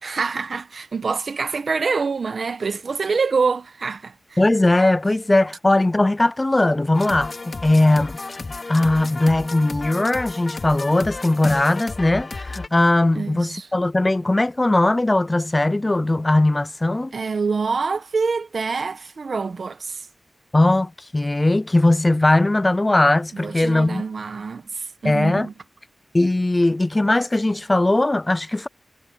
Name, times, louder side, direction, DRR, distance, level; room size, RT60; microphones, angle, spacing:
voice 1, 0.0-4.4 13.1-13.7 17.1-20.1 23.3-25.5, right 4 dB, 65° right, 1.3 m, -26 dB
voice 2, 4.4-8.2 8.7-17.1 20.5-24.0 25.0-25.5 26.1-28.7, left 2 dB, 25° left, 0.4 m, -19 dB
sound 1, 6.9-12.7, left 3 dB, 50° left, 2.9 m, -33 dB
wide cardioid pair, 75°, 0 cm